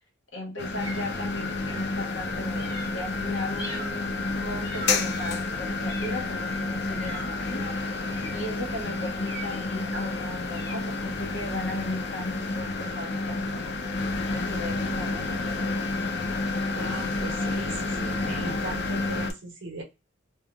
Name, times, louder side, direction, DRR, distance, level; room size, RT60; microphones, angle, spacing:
voice 1, 0.3-7.7 8.3-13.8 14.3-16.0, left 1 dB, 80° left, 1.2 m, -37 dB
sound 1, 0.6-19.3, left 3 dB, 60° left, 0.4 m, -30 dB
sound 2, 0.8-1.9 2.5-3.0 3.5-4.0 4.6-5.3 5.8-6.4 7.0-7.4 8.0-8.5 9.2-9.7 10.5-14.4, right 1 dB, 25° left, 1.0 m, -44 dB
sound 3, 2.0-12.6, right 2 dB, 30° right, 0.6 m, -51 dB
voice 2, 16.6-19.8, right 2 dB, 75° right, 1.1 m, -38 dB
2.8 x 2.3 x 2.4 m
head